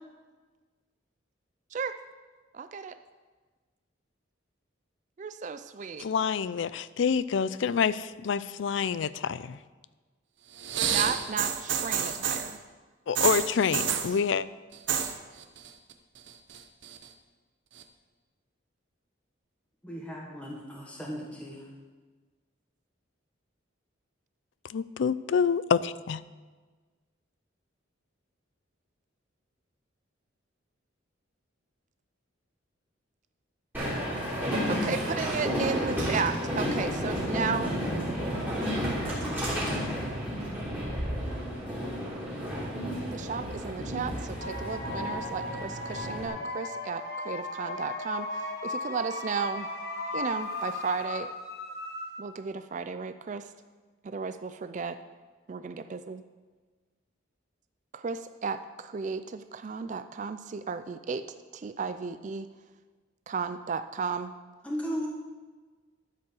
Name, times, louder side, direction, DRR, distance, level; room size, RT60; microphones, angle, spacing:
voice 1, 2.5-2.9 5.2-6.1 10.9-12.6 34.6-37.7 43.1-49.7 50.1-51.3 52.2-53.5 54.0-55.0 55.5-56.2 57.9-61.3 61.5-62.5 63.3-64.3, right 5 dB, 40° right, 11 dB, 0.3 m, -34 dB
voice 2, 6.0-9.6 13.1-14.5 24.7-26.2, left 6 dB, 70° left, 17 dB, 0.4 m, -27 dB
sound 1, 10.6-12.5 13.2-14.1 14.7-15.2 15.4-15.9 16.3-17.0 17.8-17.9, right 8 dB, 65° right, 0.8 m, -29 dB
voice 3, 19.8-21.6 64.6-65.1, equal, 5° left, -3 dB, 1.4 m, -36 dB
Train, 33.7-46.3, equal, 10° right, 3.3 m, -32 dB
sound 2, 44.4-52.5, left 2 dB, 50° left, 1.3 m, -36 dB
12.0 x 5.4 x 7.0 m, 1.4 s
head